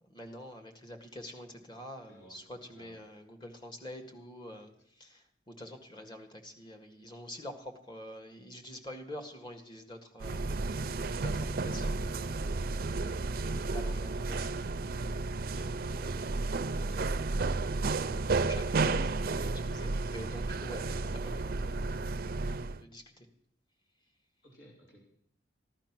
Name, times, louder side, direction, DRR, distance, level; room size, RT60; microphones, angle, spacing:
voice 1, 0.0-12.6 13.0-14.6 16.0-16.2 16.8-17.3 17.8-21.9 22.1-23.3, left 1 dB, 25° left, 4 dB, 1.8 m, -47 dB
voice 2, 2.1-2.4 2.7-3.0 24.4-25.1, equal, 80° left, -3 dB, 4.5 m, -56 dB
sound 1, 10.2-22.8, right 3 dB, 55° right, 0.5 m, -32 dB
15.5 x 11.5 x 6.0 m, 0.69 s
head